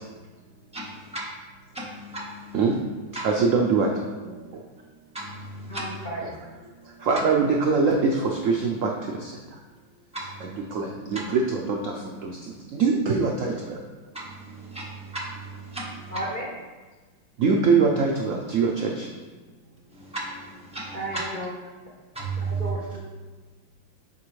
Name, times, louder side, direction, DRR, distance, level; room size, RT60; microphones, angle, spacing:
voice 1, 0.7-1.2 1.7-2.6 3.1-3.3 5.1-6.1 10.1-10.6 14.1-16.2 19.9-21.2 22.1-22.7, right 3 dB, 5° right, -6 dB, 0.8 m, -35 dB
voice 2, 3.2-3.9 7.0-8.9 9.2-9.3 10.7-11.9 12.2-12.3 12.7-13.8 17.4-19.1, right 4 dB, 80° right, 1 dB, 0.7 m, -22 dB
voice 3, 5.7-6.3 16.1-16.5 20.9-21.5 22.4-23.0, right 1 dB, 40° left, -5 dB, 0.8 m, -34 dB
8.3 x 4.1 x 3.1 m, 1.3 s
omnidirectional pair, 2.0 m